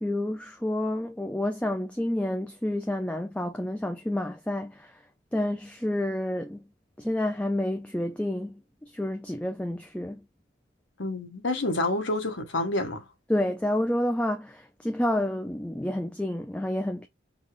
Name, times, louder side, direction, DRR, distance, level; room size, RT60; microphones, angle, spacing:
voice 1, 0.0-5.0 5.3-6.6 7.0-10.2 13.3-17.1, left 1 dB, 5° left, 0.4 m, -29 dB
voice 2, 11.0-13.0, left 2 dB, 65° left, 1.4 m, -28 dB
5.5 x 2.3 x 3.3 m
head